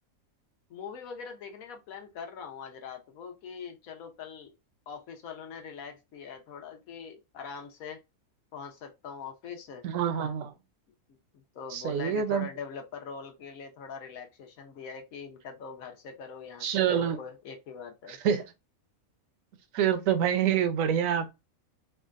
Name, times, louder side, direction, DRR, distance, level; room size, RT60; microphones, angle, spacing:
voice 1, 0.7-4.5 4.9-8.0 8.5-9.8 11.1-18.2, left 6 dB, 75° left, 1.2 m, -43 dB
voice 2, 9.8-10.5 11.7-12.5 16.6-17.2 18.1-18.4 19.7-21.3, right 8 dB, 75° right, 1.0 m, -26 dB
3.6 x 2.2 x 2.4 m
omnidirectional pair, 1.5 m